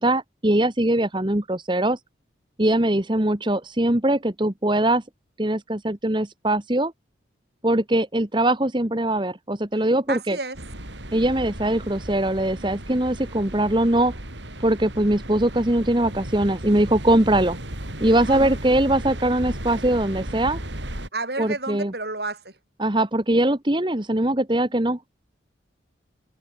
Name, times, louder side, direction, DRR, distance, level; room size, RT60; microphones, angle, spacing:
voice 1, 0.0-2.0 2.6-5.0 5.4-6.9 7.6-10.4 11.1-14.1 14.6-17.6 18.0-20.6 21.4-21.9 22.8-25.0, right 1 dB, 25° right, 1.5 m, -21 dB
voice 2, 10.1-10.6 18.3-18.6 21.1-22.6, right 2 dB, 60° right, 7.4 m, -31 dB
sound 1, 10.5-21.1, right 1 dB, 75° right, 8.0 m, -35 dB
head